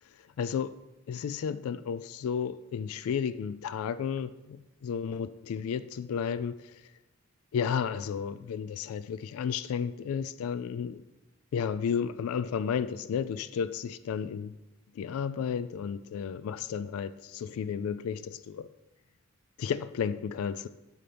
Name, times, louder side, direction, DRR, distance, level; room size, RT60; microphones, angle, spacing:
voice 1, 0.4-0.7 1.1-6.7 7.5-11.0 11.5-14.5 15.0-18.7 19.6-20.7, left 7 dB, 75° left, 0.3 m, -32 dB
9.0 x 5.7 x 3.4 m
head